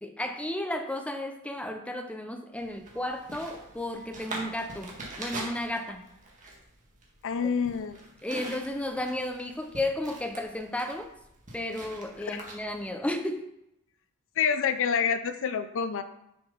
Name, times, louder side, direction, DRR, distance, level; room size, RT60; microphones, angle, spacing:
voice 1, 0.0-6.1 8.2-11.1 11.5-13.4, left 1 dB, 5° left, 5 dB, 0.7 m, -33 dB
sound 1, 2.5-12.9, right 2 dB, 35° right, 1.7 m, -44 dB
voice 2, 7.2-8.0 12.3-12.4 14.4-16.0, left 6 dB, 60° left, 10 dB, 0.5 m, -27 dB
6.8 x 5.1 x 5.5 m, 0.81 s
head